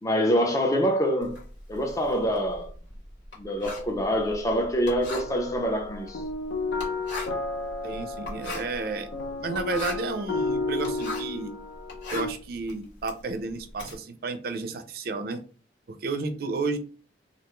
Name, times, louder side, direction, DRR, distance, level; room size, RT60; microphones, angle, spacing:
voice 1, 0.0-1.4 1.7-2.7 3.4-6.2, equal, 20° left, 0.4 m, -25 dB
Writing, 1.2-11.4 11.8-13.9, left 2 dB, 75° left, 1.2 m, -39 dB
sound 1, 5.1-12.3, left 3 dB, 90° left, 0.4 m, -32 dB
voice 2, 7.8-9.1 9.4-11.5 12.1-15.4 16.0-16.8, right 3 dB, 55° right, 0.4 m, -32 dB
2.3 x 2.2 x 2.9 m
head